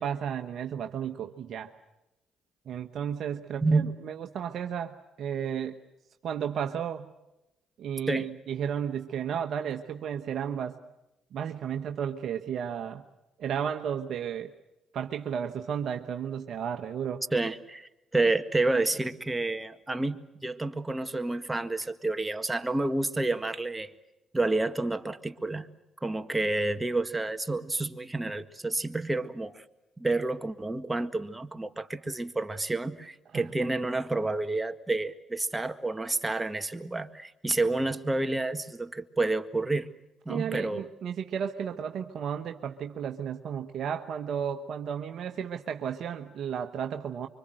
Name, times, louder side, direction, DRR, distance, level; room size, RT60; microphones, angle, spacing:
voice 1, 0.0-1.7 2.7-5.8 6.2-7.1 7.8-10.7 11.3-13.0 13.4-14.5 14.9-17.2 33.3-33.5 40.3-47.3, right 8 dB, 65° right, 6 dB, 1.1 m, -33 dB
voice 2, 3.6-3.9 8.1-8.3 17.3-23.9 24.3-25.7 26.0-29.6 30.0-39.9 40.3-40.9, right 2 dB, 15° right, 9 dB, 1.8 m, -29 dB
25.5 x 24.5 x 7.8 m, 0.93 s
hypercardioid pair, 55°, 0 cm